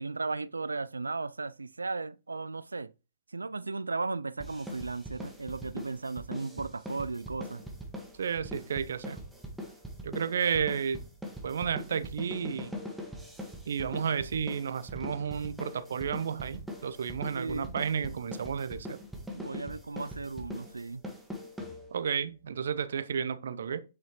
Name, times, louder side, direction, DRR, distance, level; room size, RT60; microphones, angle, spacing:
voice 1, 0.0-2.9 3.3-7.6 17.3-17.8 18.0-18.1 19.3-21.0, right 3 dB, 80° right, 0.3 m, -36 dB
sound 1, 4.4-22.2, equal, 5° right, 1.7 m, -42 dB
voice 2, 8.2-9.2 10.0-11.0 11.4-12.7 13.7-19.0 21.9-23.8, right 7 dB, 65° right, 0.8 m, -32 dB
8.3 x 7.4 x 3.0 m
figure-of-eight pair, 120°, 0 cm